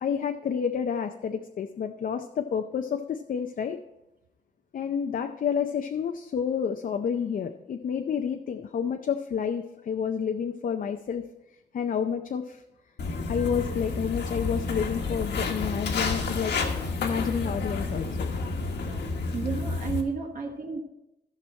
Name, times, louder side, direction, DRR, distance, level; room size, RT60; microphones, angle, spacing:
voice 1, 0.0-3.8 4.7-11.3 11.7-12.6 13.2-16.5 17.0-18.3, left 7 dB, 50° left, 6 dB, 0.5 m, -29 dB
Walk footsteps, 13.0-20.0, left 4 dB, 75° left, 1.4 m, -30 dB
voice 2, 19.3-20.8, right 5 dB, 50° right, 1 dB, 1.2 m, -32 dB
14.0 x 6.1 x 4.2 m, 0.90 s
wide cardioid pair, 135°, 18 cm